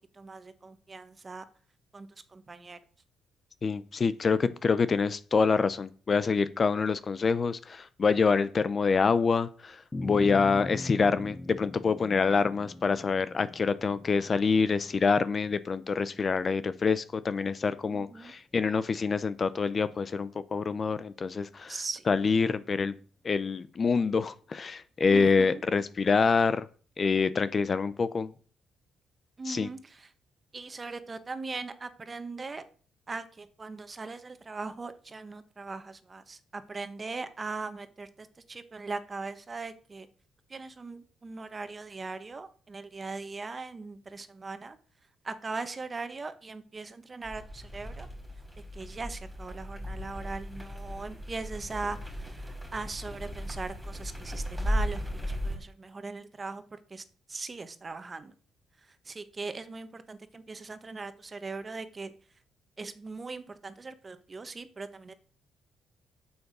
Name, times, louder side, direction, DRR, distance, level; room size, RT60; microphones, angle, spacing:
voice 1, 0.1-1.4 1.9-2.8 17.9-18.3 21.7-22.1 25.1-25.6 29.4-30.1 30.5-32.6 33.1-40.1 40.5-44.8 45.2-48.1 48.7-56.6 56.9-58.3 58.9-62.1 62.8-65.1, right 3 dB, 30° right, 10 dB, 1.3 m, -40 dB
voice 2, 3.6-21.8 22.1-22.9 23.2-26.7 27.0-28.3 29.5-29.7, left 5 dB, 40° left, 15 dB, 0.7 m, -26 dB
sound 1, 9.9-16.5, left 2 dB, 20° left, 1.1 m, -41 dB
sound 2, 47.2-55.6, equal, 5° right, 3.6 m, -36 dB
8.8 x 7.1 x 6.8 m, 0.42 s
cardioid pair, 90°, 0 cm